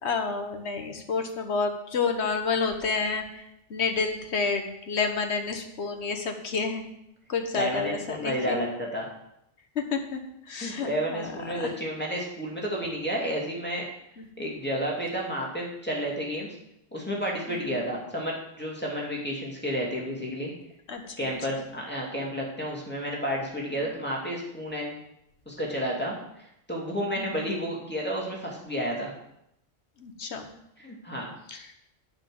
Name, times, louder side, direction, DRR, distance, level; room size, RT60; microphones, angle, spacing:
voice 1, 0.0-3.4 3.7-6.8 7.3-8.6 9.7-10.2 10.5-11.7 14.2-14.5 17.5-17.9 20.9-21.6 23.7-23.9 27.1-27.5 30.0-30.5 31.5-31.7, left 4 dB, 90° left, 5 dB, 1.5 m, -30 dB
voice 2, 7.5-9.1 10.6-13.9 14.4-16.6 16.9-20.5 21.2-24.9 25.5-29.1 30.8-31.3, equal, 10° left, -3 dB, 2.6 m, -31 dB
10.0 x 5.9 x 7.7 m, 0.79 s
omnidirectional pair, 1.1 m